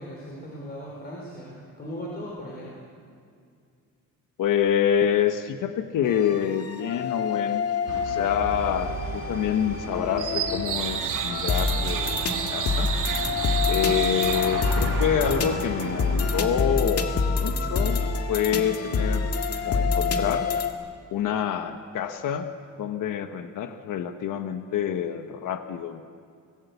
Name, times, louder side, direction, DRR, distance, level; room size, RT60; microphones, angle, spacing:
voice 1, 0.0-2.7, equal, 30° left, -3 dB, 4.5 m, -38 dB
voice 2, 4.4-7.6 7.9-12.9 13.7-17.1 17.4-18.0 18.3-19.3 19.7-20.5 21.1-22.5 22.8-26.0, left 9 dB, 80° left, 7 dB, 1.3 m, -27 dB
sound 1, 6.0-20.7, left 4 dB, 50° left, 1.9 m, -27 dB
sound 2, 7.9-16.5, right 7 dB, 80° right, 2.2 m, -31 dB
24.5 x 19.0 x 8.3 m, 2.2 s
cardioid pair, 160°, 31 cm